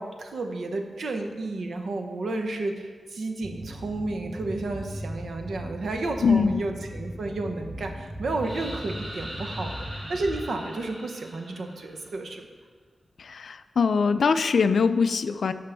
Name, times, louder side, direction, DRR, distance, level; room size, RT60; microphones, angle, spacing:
voice 1, 0.0-12.5, right 2 dB, 70° right, 4 dB, 0.8 m, -32 dB
sound 1, 3.4-10.5, equal, 5° right, 0.5 m, -38 dB
voice 2, 6.2-6.6 13.3-15.5, left 5 dB, 65° left, 11 dB, 0.3 m, -22 dB
sound 2, 8.4-12.2, equal, 40° right, 2.1 m, -41 dB
12.5 x 5.1 x 3.4 m, 1.5 s
wide cardioid pair, 175°, 0 cm